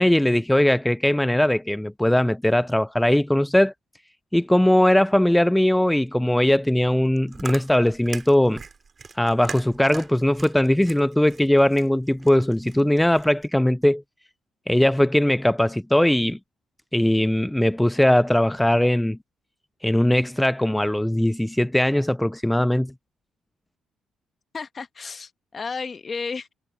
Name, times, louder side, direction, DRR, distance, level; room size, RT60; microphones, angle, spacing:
voice 1, 0.0-3.7 4.3-8.6 9.2-14.0 14.7-16.4 16.9-19.2 19.8-22.9, left 1 dB, 5° left, 0.4 m, -20 dB
Chewing mastication, 7.0-13.5, right 5 dB, 40° right, 4.3 m, -40 dB
voice 2, 24.5-26.5, left 5 dB, 35° left, 1.1 m, -33 dB
cardioid pair, 90°, 0 cm